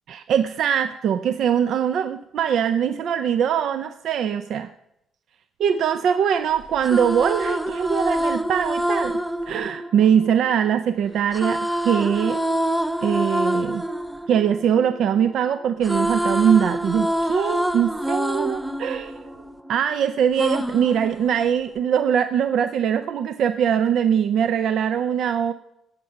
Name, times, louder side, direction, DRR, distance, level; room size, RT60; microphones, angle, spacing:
voice 1, 0.1-4.7 5.6-9.2 9.5-12.4 13.0-13.8 14.3-19.3 19.7-25.5, right 8 dB, 60° right, 10 dB, 0.5 m, -22 dB
sound 1, 6.6-10.7 11.3-15.4 15.6-19.9 20.4-21.8, right 1 dB, 5° right, 0.4 m, -26 dB
17.0 x 6.7 x 5.7 m, 0.82 s
cardioid pair, 170°, 0 cm